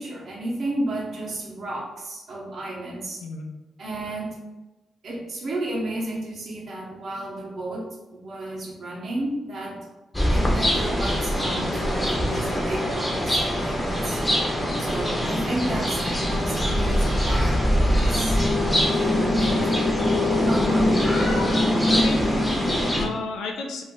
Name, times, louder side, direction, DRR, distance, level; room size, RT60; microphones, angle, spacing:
voice 1, 0.0-3.2 3.8-4.4 5.0-9.9 10.3-14.2 14.8-18.4 18.7-19.9 20.4-21.1, right 1 dB, 60° right, -3 dB, 0.8 m, -32 dB
sound 1, 10.1-23.1, left 1 dB, 10° left, 0.6 m, -22 dB
voice 2, 21.9-23.8, left 3 dB, 85° left, 1 dB, 0.4 m, -33 dB
2.4 x 2.0 x 3.6 m, 1.1 s
cardioid pair, 65°, 0 cm